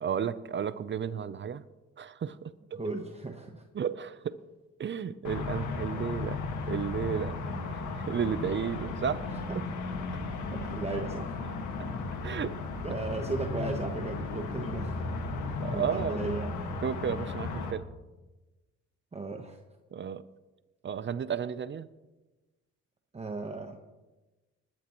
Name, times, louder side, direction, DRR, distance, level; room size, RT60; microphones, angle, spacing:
voice 1, 0.0-1.6 2.0-2.8 3.7-4.4 4.8-6.4 6.7-7.4 7.7-9.6 12.2-12.6 15.6-16.2 16.8-17.8 19.9-20.2 20.8-21.9, right 7 dB, 40° right, 15 dB, 0.6 m, -33 dB
voice 2, 2.7-3.6 9.5-9.6 10.5-11.3 12.8-15.1 15.7-16.5 19.1-19.6 23.1-23.8, right 3 dB, 20° right, 4 dB, 1.1 m, -36 dB
sound 1, 5.2-17.7, left 3 dB, 75° left, 1.8 m, -35 dB
20.0 x 12.0 x 3.0 m, 1.1 s
cardioid pair, 90°, 30 cm